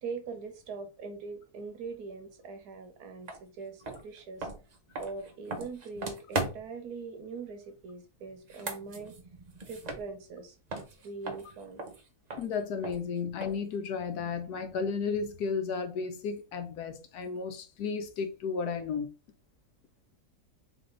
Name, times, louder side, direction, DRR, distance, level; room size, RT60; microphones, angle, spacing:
voice 1, 0.0-4.5 5.0-9.1 9.7-10.6 11.0-11.9, right 4 dB, 80° right, 1.4 m, -42 dB
sound 1, 3.3-3.4 3.8-6.8 8.4-10.4 10.7-13.8, right 2 dB, 50° right, 0.5 m, -39 dB
voice 2, 12.4-19.1, left 5 dB, 80° left, 1.2 m, -33 dB
3.5 x 3.4 x 3.7 m
omnidirectional pair, 1.7 m